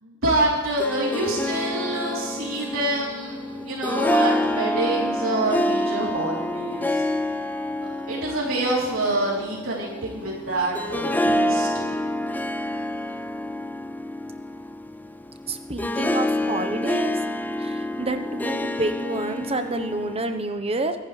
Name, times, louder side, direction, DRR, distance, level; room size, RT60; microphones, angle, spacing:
voice 1, 0.0-7.0 7.8-12.0, right 2 dB, 85° right, -4 dB, 3.5 m, -26 dB
Harp, 0.6-20.4, left 1 dB, 10° left, 0.4 m, -27 dB
voice 2, 15.5-17.2 17.6-21.0, right 2 dB, 30° right, 7 dB, 1.0 m, -28 dB
24.5 x 10.5 x 3.3 m, 1.5 s
head